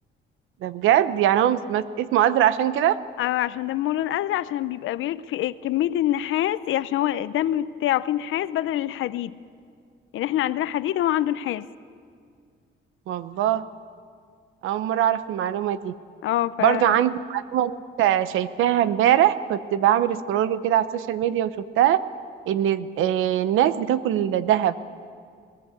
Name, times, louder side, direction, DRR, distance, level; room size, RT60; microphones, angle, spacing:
voice 1, 0.6-3.0 13.1-13.6 14.6-15.9 16.6-22.0 22.5-24.7, right 11 dB, 90° right, 13 dB, 0.9 m, -22 dB
voice 2, 3.2-9.3 10.1-11.7 16.2-17.0, left 13 dB, 80° left, 15 dB, 0.7 m, -25 dB
21.0 x 20.5 x 8.3 m, 2.1 s
cardioid pair, 90°, 20 cm